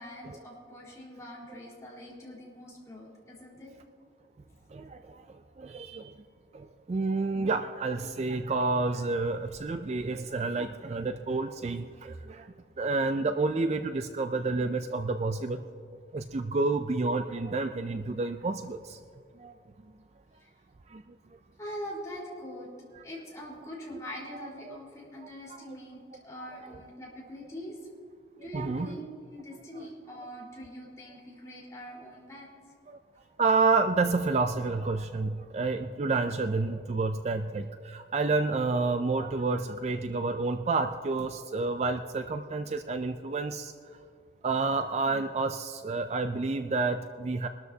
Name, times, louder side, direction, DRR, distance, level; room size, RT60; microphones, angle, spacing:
voice 1, 0.0-3.7 20.4-20.5 21.6-22.7 23.0-27.8 28.4-32.5, equal, 15° left, -5 dB, 4.0 m, -43 dB
voice 2, 4.7-6.1 6.5-15.6 16.1-19.0 19.4-19.5 20.9-21.0 24.3-24.8 25.2-25.8 26.4-26.7 28.5-29.0 32.9-33.0 33.4-43.7 44.4-47.5, right 3 dB, 35° right, 8 dB, 0.4 m, -30 dB
22.5 x 13.0 x 2.8 m, 2.3 s
head